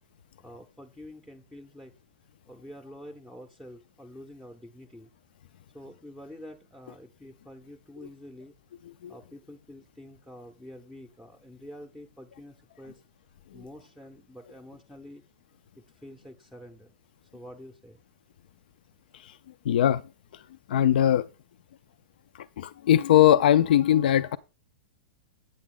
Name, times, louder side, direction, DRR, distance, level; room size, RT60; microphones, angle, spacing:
voice 1, 0.4-1.9 2.5-5.1 5.7-8.5 9.1-13.0 13.5-15.2 15.8-16.9 17.3-18.0, left 1 dB, ahead, 0.6 m, -47 dB
voice 2, 19.7-20.0 20.3-20.4 20.7-21.3 22.3-24.4, left 11 dB, 75° left, 0.3 m, -21 dB
8.7 x 8.1 x 3.7 m
supercardioid pair, 160°, 5 cm